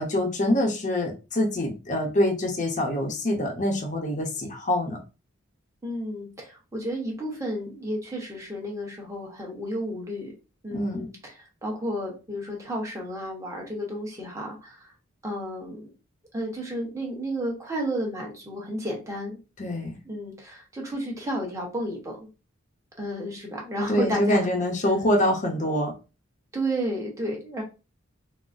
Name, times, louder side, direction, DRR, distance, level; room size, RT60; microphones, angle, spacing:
voice 1, 0.0-5.0 10.7-11.1 19.6-20.0 23.9-25.9, left 1 dB, 40° left, 1 dB, 0.6 m, -25 dB
voice 2, 5.8-10.3 10.6-14.9 15.2-15.9 16.3-19.4 20.0-22.3 23.0-24.5 26.5-27.6, equal, 15° right, -1 dB, 0.9 m, -32 dB
3.8 x 2.0 x 2.5 m, 0.30 s
head